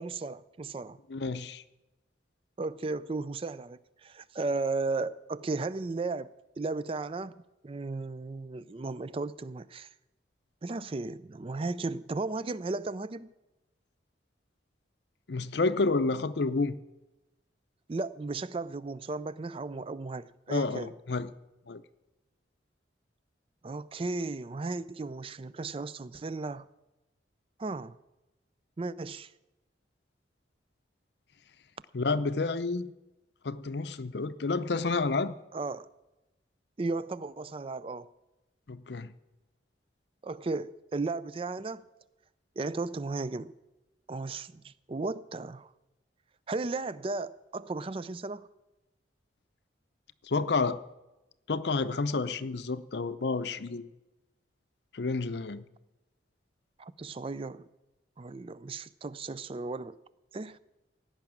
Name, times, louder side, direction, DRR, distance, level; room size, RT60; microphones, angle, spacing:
voice 1, 0.0-1.0 2.6-9.9 10.6-13.3 17.9-20.9 23.6-26.7 27.6-28.0 28.8-29.3 35.5-35.9 36.8-38.1 40.2-41.9 42.6-43.5 44.1-45.7 46.5-48.5 56.8-57.7 58.2-60.0 60.3-60.6, right 3 dB, 30° right, 0.4 m, -35 dB
voice 2, 1.1-1.6 15.3-16.8 20.5-21.3 21.7-21.8 31.9-32.9 33.4-35.4 38.7-39.1 50.2-50.8 51.5-53.8 54.9-55.6, left 3 dB, 65° left, 0.6 m, -30 dB
17.0 x 5.9 x 8.6 m
head